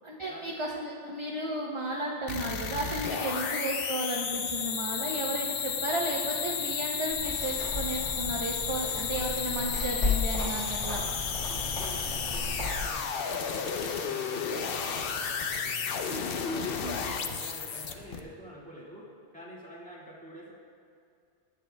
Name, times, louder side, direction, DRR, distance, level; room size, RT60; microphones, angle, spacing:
voice 1, 0.0-11.0 16.8-17.0, right 1 dB, 30° right, -2 dB, 0.6 m, -34 dB
sound 1, 2.3-18.2, left 6 dB, 60° left, 0.8 m, -33 dB
sound 2, 7.1-12.9, left 3 dB, 90° left, 3.4 m, -34 dB
voice 2, 11.0-20.5, equal, 5° left, -6 dB, 1.8 m, -47 dB
18.5 x 9.3 x 2.2 m, 2.4 s
omnidirectional pair, 1.2 m